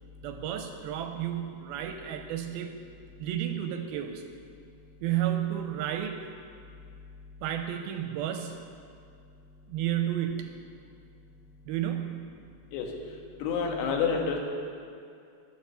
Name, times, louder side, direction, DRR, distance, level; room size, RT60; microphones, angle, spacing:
voice 1, 0.2-2.8 3.2-4.2 5.0-6.2 7.4-8.7 9.7-10.6 11.7-12.3, right 11 dB, 80° right, 6 dB, 2.3 m, -32 dB
voice 2, 13.4-14.4, left 6 dB, 85° left, 1 dB, 3.5 m, -28 dB
11.5 x 10.5 x 6.8 m, 2.3 s
omnidirectional pair, 4.7 m